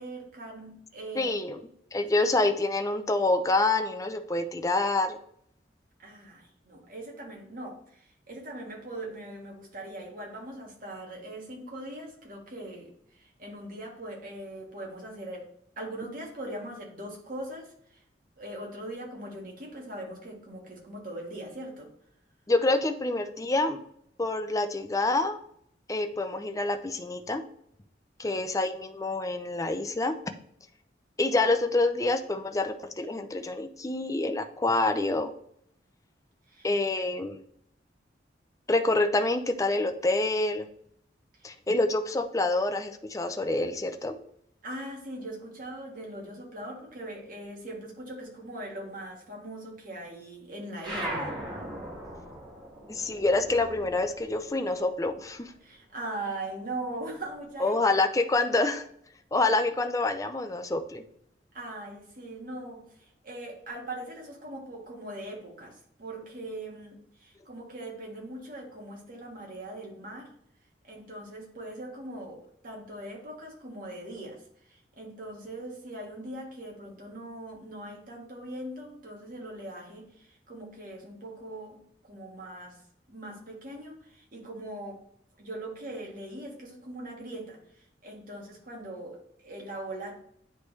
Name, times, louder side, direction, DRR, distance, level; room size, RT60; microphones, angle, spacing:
voice 1, 0.0-1.3 6.0-15.5 15.8-18.0 18.4-21.9 28.2-28.4 36.5-36.7 44.6-51.3 55.6-57.8 61.5-70.3 70.8-74.4 74.7-82.8 83.1-85.0 85.4-87.6 88.0-90.2, right 1 dB, 50° right, -1 dB, 1.7 m, -41 dB
voice 2, 1.1-1.6 1.9-5.2 22.5-23.8 24.2-25.4 25.9-27.4 28.2-30.2 31.2-35.3 36.6-37.4 38.7-40.7 41.4-44.2 52.9-55.5 57.6-58.9 59.3-61.0, left 2 dB, 20° left, 7 dB, 0.5 m, -27 dB
sound 1, 50.8-55.7 56.0-57.4, right 1 dB, 25° right, 1.8 m, -39 dB
9.7 x 3.3 x 3.2 m, 0.69 s
head